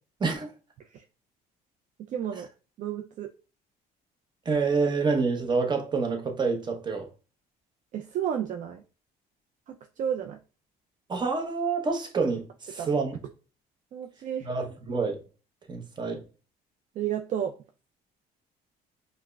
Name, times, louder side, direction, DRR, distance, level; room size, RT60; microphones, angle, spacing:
voice 1, 0.2-0.5 4.5-7.1 11.1-13.2 14.4-15.2 15.7-16.2, right 4 dB, 25° right, 0.8 m, -27 dB
voice 2, 2.1-2.5 2.8-3.3 7.9-8.8 9.7-10.4 12.8-12.9 13.9-14.5 17.0-17.5, right 9 dB, 50° right, 0.4 m, -32 dB
4.7 x 2.1 x 2.2 m
cardioid pair, 110°, 17 cm